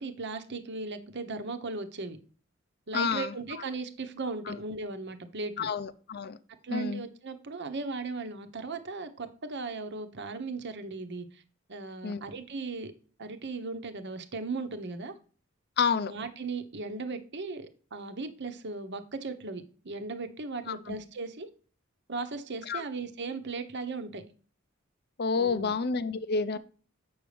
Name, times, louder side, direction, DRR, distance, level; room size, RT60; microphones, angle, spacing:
voice 1, 0.0-2.2 2.9-5.7 6.6-11.4 11.7-12.9 13.2-15.2 15.9-21.5 22.1-24.2 25.3-25.7, right 3 dB, 55° right, 9 dB, 1.0 m, -37 dB
voice 2, 2.9-3.3 4.5-4.6 5.6-6.4 6.7-7.0 12.0-12.2 15.8-16.1 20.7-20.8 22.7-22.8 25.2-26.6, left 5 dB, 55° left, 13 dB, 0.6 m, -29 dB
7.8 x 6.4 x 3.3 m, 0.40 s
head